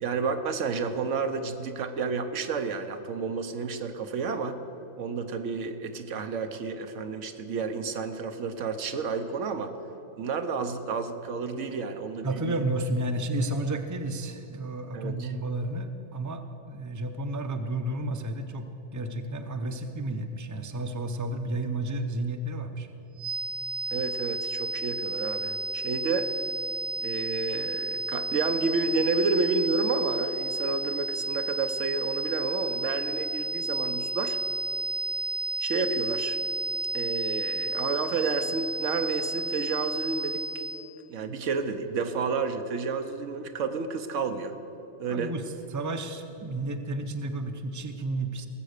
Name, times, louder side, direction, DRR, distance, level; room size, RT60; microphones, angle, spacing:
voice 1, 0.0-4.6 5.0-9.7 10.2-12.6 14.9-15.3 23.9-26.3 27.0-34.4 35.6-36.4 36.9-40.4 41.1-44.6 45.0-45.3, right 4 dB, 80° right, 7 dB, 1.1 m, -30 dB
voice 2, 12.2-18.7 18.9-22.9 45.1-45.4 45.7-48.5, right 2 dB, 20° right, 7 dB, 0.6 m, -32 dB
sound 1, 23.2-40.9, right 2 dB, 60° right, 0.7 m, -32 dB
18.5 x 7.6 x 6.6 m, 3.0 s
omnidirectional pair, 1.2 m